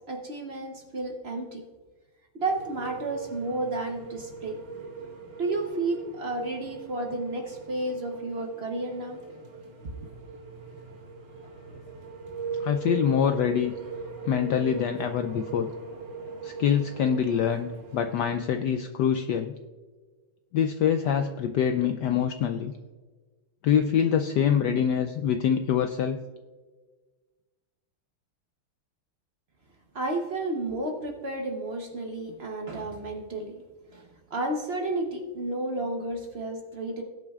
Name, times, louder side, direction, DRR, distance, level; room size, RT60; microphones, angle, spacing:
voice 1, 0.1-1.6 2.3-4.6 5.4-9.2 29.9-33.6 33.9-37.0, right 2 dB, 60° right, 3 dB, 0.6 m, -32 dB
sound 1, 2.4-18.4, right 4 dB, 35° right, 2.3 m, -40 dB
voice 2, 12.6-13.7 14.3-15.7 16.4-19.5 20.5-22.7 23.6-26.2, left 8 dB, 90° left, 7 dB, 0.9 m, -25 dB
19.5 x 8.6 x 2.4 m, 1.3 s
omnidirectional pair, 2.4 m